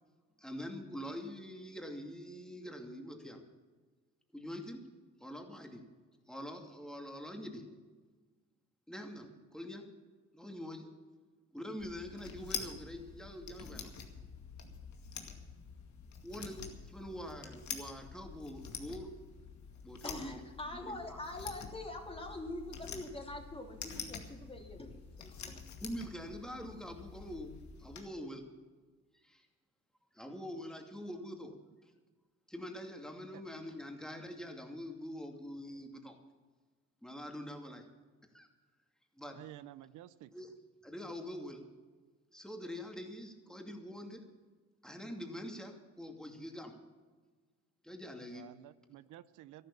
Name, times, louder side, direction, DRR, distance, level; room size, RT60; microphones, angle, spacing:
voice 1, 0.4-3.4 4.3-4.8 5.2-5.8 6.3-7.7 8.9-9.9 10.3-10.9 11.5-13.9 16.2-19.1 19.8-20.4 20.7-21.2 25.8-27.5 27.8-28.4 29.2-29.5 30.1-31.6 32.5-36.2 37.0-37.9 38.3-38.5 39.2-39.4 40.3-40.5 40.8-41.6 42.3-44.2 44.8-46.8 47.8-48.5, equal, ahead, 3 dB, 2.5 m, -45 dB
sound 1, 11.8-28.0, left 6 dB, 70° left, 2.2 m, -47 dB
voice 2, 20.0-25.7, left 1 dB, 20° left, 2 dB, 2.9 m, -44 dB
voice 3, 39.3-40.3 48.3-49.7, right 14 dB, 85° right, 16 dB, 0.6 m, -52 dB
13.5 x 11.5 x 7.1 m, 1.4 s
cardioid pair, 90°, 30 cm